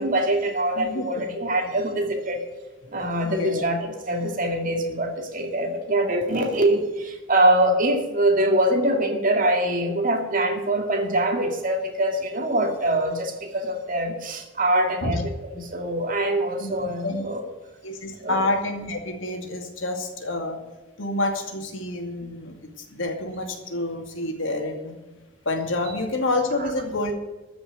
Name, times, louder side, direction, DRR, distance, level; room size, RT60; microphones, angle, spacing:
voice 1, 0.0-2.4 2.9-17.4 18.2-18.4 22.2-22.3, right 1 dB, 45° right, 3 dB, 2.2 m, -24 dB
voice 2, 0.8-1.2 3.2-3.7 15.0-15.2 16.6-17.3 17.8-20.6 21.0-25.0 25.4-27.1, left 2 dB, 90° left, 3 dB, 2.4 m, -28 dB
13.5 x 6.0 x 9.3 m, 1.2 s
head